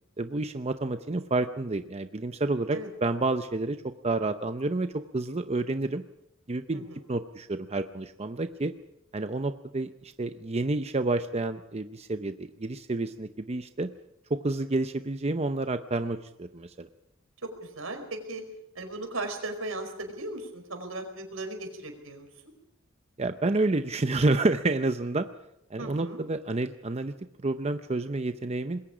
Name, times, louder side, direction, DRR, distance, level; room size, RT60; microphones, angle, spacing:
voice 1, 0.2-3.8 4.0-6.0 6.5-8.7 9.1-13.9 14.3-16.9 23.2-25.3 25.7-27.1 27.4-28.8, right 2 dB, 30° right, 9 dB, 0.7 m, -29 dB
voice 2, 17.4-18.4 18.7-22.3 25.8-26.2, right 2 dB, 85° right, 5 dB, 4.9 m, -37 dB
26.0 x 21.5 x 5.1 m, 0.84 s
head